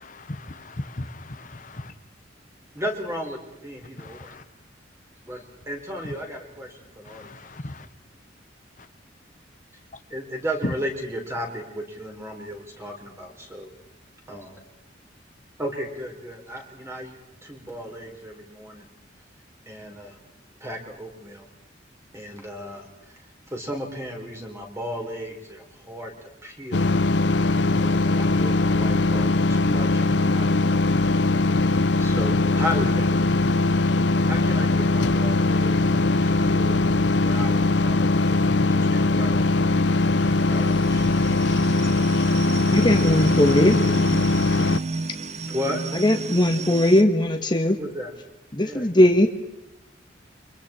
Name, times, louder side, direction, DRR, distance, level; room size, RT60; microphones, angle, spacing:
voice 1, 0.3-1.9 4.0-4.3 7.1-7.7, left 1 dB, 45° left, 10 dB, 1.1 m, -37 dB
voice 2, 2.7-4.3 5.3-7.3 10.1-13.7 14.3-14.6 15.6-17.1 17.4-18.9 19.7-20.2 20.6-21.5 22.1-23.2 23.5-26.9 27.7-31.1 32.0-33.3 34.2-36.8 37.2-39.7 40.5-41.3 45.5-45.8 47.8-48.1 48.6-48.9, equal, 15° right, 1 dB, 4.0 m, -35 dB
sound 1, 26.7-44.8, left 2 dB, 70° left, 0.7 m, -21 dB
sound 2, 38.9-47.0, right 4 dB, 35° right, 1.0 m, -35 dB
voice 3, 42.7-43.8 45.9-47.8 48.5-49.3, left 1 dB, 25° left, 4 dB, 1.6 m, -19 dB
30.0 x 25.0 x 4.4 m, 0.90 s
head